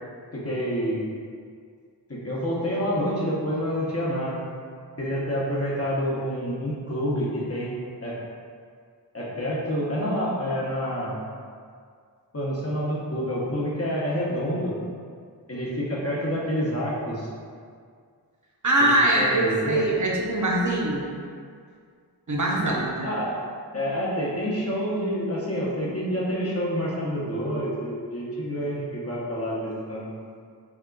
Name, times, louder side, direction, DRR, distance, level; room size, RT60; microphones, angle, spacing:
voice 1, 0.3-1.0 2.1-4.4 5.0-7.7 8.0-8.2 9.1-11.2 12.3-14.7 15.5-17.3 18.8-18.9 19.2-19.8 23.0-23.3 23.7-30.1, equal, 35° left, -6 dB, 0.9 m, -28 dB
voice 2, 18.6-21.1 22.3-23.1, right 1 dB, 45° right, -3 dB, 0.6 m, -22 dB
3.6 x 2.3 x 3.8 m, 2.1 s
wide cardioid pair, 60°, 41 cm